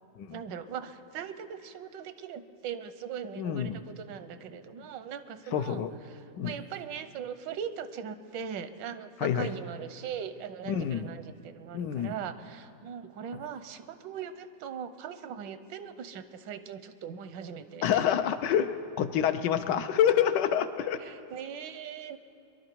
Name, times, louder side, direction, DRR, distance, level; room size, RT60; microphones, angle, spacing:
voice 1, 0.3-5.8 6.1-17.9 21.0-22.2, right 7 dB, 90° right, 11 dB, 1.4 m, -40 dB
voice 2, 3.4-3.8 5.5-5.9 6.4-6.6 9.2-9.5 10.7-11.1 11.7-12.1 17.8-21.0, left 9 dB, 80° left, 10 dB, 1.3 m, -27 dB
23.5 x 11.5 x 4.5 m, 2.8 s
omnidirectional pair, 1.9 m